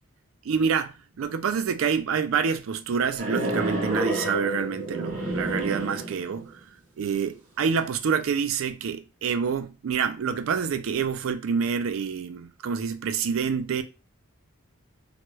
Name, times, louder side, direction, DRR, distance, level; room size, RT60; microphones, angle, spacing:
voice 1, 0.4-6.5 7.0-13.8, right 6 dB, 65° right, 0.4 m, -27 dB
sound 1, 3.2-6.5, right 2 dB, 35° right, 0.8 m, -29 dB
2.9 x 2.2 x 3.0 m
head